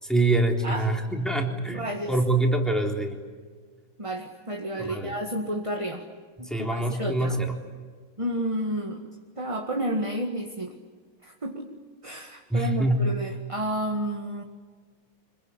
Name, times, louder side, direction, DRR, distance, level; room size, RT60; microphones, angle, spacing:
voice 1, 0.0-3.2 4.8-5.1 6.4-7.5 12.5-13.0, right 2 dB, ahead, 1 dB, 3.7 m, -25 dB
voice 2, 1.7-2.1 4.0-6.0 6.4-7.5 8.2-9.0 9.4-10.7 11.2-11.7 12.0-14.4, right 1 dB, 15° right, 2 dB, 1.6 m, -31 dB
26.5 x 22.5 x 9.9 m, 1.5 s
omnidirectional pair, 2.4 m